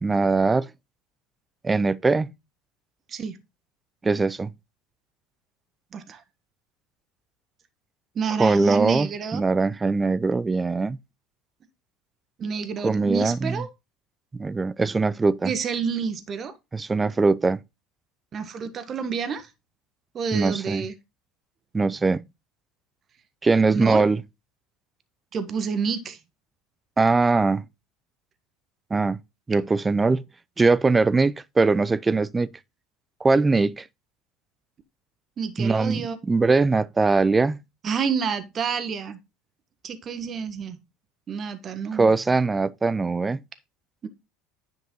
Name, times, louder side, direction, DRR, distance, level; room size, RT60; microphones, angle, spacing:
voice 1, 0.0-0.7 1.6-2.3 4.0-4.5 8.4-11.0 12.8-13.6 14.4-15.5 16.7-17.6 20.3-20.8 21.7-22.2 23.4-24.2 27.0-27.6 28.9-29.2 29.5-30.2 30.6-32.5 33.2-33.8 35.6-37.6 41.9-43.4, right 3 dB, 20° right, 0.5 m, -21 dB
voice 2, 8.1-9.4 12.4-13.7 15.4-16.5 18.3-19.5 20.1-20.9 23.7-24.0 25.3-26.2 35.4-36.2 37.8-39.2 39.8-40.8 41.3-42.1 44.0-44.1, right 6 dB, 40° right, 1.3 m, -29 dB
10.0 x 5.4 x 3.9 m
hypercardioid pair, 75°, 0 cm